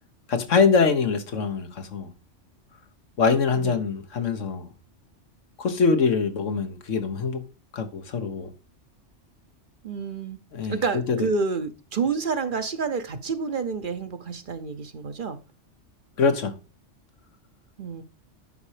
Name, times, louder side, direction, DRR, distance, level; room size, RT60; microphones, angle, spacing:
voice 1, 0.3-2.1 3.2-4.7 5.6-7.4 7.7-8.5 10.5-10.8 11.1-11.3 16.2-16.5, left 5 dB, 85° left, 1.6 m, -23 dB
voice 2, 9.8-10.4 10.7-15.4 17.8-18.0, right 5 dB, 50° right, 0.9 m, -29 dB
11.0 x 4.3 x 4.9 m
omnidirectional pair, 1.2 m